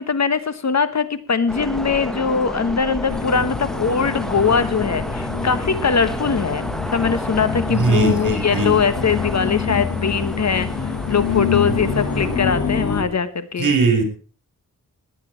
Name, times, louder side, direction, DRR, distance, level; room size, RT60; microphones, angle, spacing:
voice 1, 0.0-6.6 6.9-13.7, left 5 dB, 50° left, 13 dB, 1.2 m, -21 dB
sound 1, 1.5-12.4, equal, ahead, 1.0 m, -31 dB
sound 2, 3.1-13.0, left 6 dB, 80° left, 3.9 m, -26 dB
voice 2, 7.7-8.7 13.6-14.0, right 4 dB, 65° right, 7 dB, 4.3 m, -19 dB
18.5 x 9.3 x 4.5 m, 0.39 s
wide cardioid pair, 110°, 34 cm